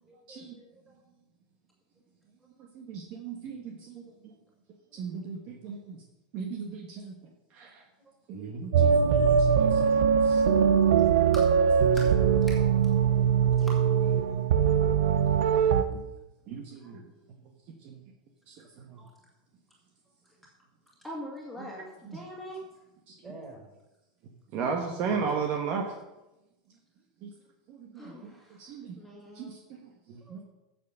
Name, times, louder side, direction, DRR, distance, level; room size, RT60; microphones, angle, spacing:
voice 1, 0.0-0.9 8.0-8.6 16.8-16.9 19.0-19.1 23.2-23.7 25.0-25.3 30.3-30.4, right 2 dB, 15° right, -1 dB, 4.6 m, -50 dB
voice 2, 2.7-4.3 4.9-6.0 6.3-7.1 7.5-7.8 8.3-10.4 15.9-16.0 16.5-17.1 17.8-18.0 18.5-19.0 21.6-21.7 22.1-22.2 23.1-23.3 24.5-25.9 27.2-27.3 27.7-28.1 28.6-29.0 29.3-30.4, right 5 dB, 45° right, 2 dB, 1.3 m, -36 dB
sound 1, 8.7-15.8, right 7 dB, 80° right, 0.8 m, -22 dB
voice 3, 21.0-22.6 27.9-29.6, equal, 5° left, -4 dB, 2.2 m, -42 dB
9.2 x 7.2 x 6.5 m, 0.98 s
supercardioid pair, 135°, 3 cm